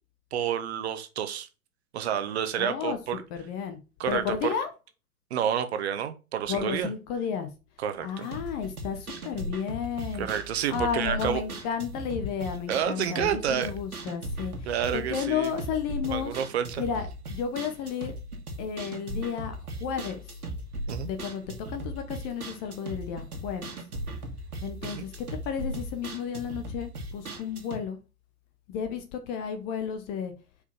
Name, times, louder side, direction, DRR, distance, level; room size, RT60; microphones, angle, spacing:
voice 1, 0.3-1.5 1.9-3.2 4.0-4.5 5.3-6.9 7.8-8.3 10.2-11.4 12.7-13.7 14.7-15.5 16.1-16.8 20.9-21.1 24.8-25.0, right 9 dB, 45° right, 1.1 m, -29 dB
voice 2, 2.6-3.8 4.1-4.7 6.5-7.5 8.0-16.4 16.8-18.1 18.6-20.4 21.0-23.7 24.6-28.0 28.7-30.3, left 7 dB, 20° left, 0.7 m, -33 dB
sound 1, 8.2-27.8, right 1 dB, 70° right, 1.7 m, -38 dB
5.3 x 4.9 x 5.7 m
figure-of-eight pair, 110°, 45 cm